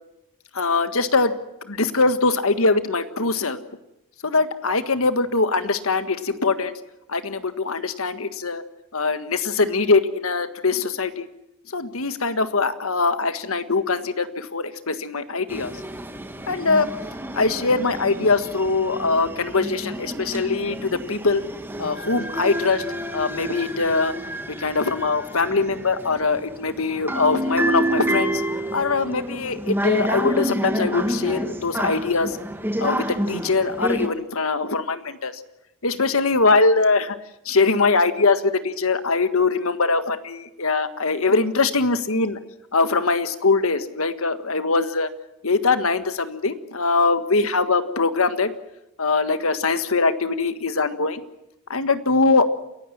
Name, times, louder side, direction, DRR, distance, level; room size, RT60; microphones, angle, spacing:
voice 1, 0.5-1.3 1.7-3.6 4.2-6.7 7.1-8.6 8.9-11.3 11.7-15.7 16.5-16.9 17.3-20.8 21.1-21.4 21.8-22.8 23.1-24.1 24.6-28.3 28.7-32.4 32.8-35.3 35.8-37.2 37.4-42.4 42.7-45.1 45.4-48.5 49.0-51.2 51.7-52.4, left 3 dB, 70° left, 11 dB, 1.5 m, -22 dB
sound 1, 15.5-34.1, right 1 dB, 10° right, 1.4 m, -29 dB
28.5 x 16.0 x 7.3 m, 0.88 s
head